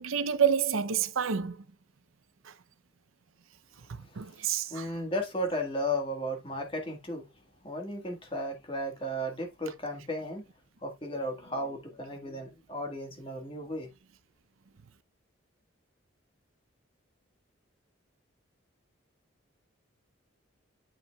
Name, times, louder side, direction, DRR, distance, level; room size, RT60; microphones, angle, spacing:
voice 1, 0.0-1.6 2.4-2.5 4.2-4.9, right 7 dB, 85° right, 0.7 m, -28 dB
voice 2, 4.0-4.4 4.7-7.3 7.6-10.4 10.8-13.9, equal, 25° left, 1.7 m, -35 dB
8.9 x 5.5 x 2.3 m
head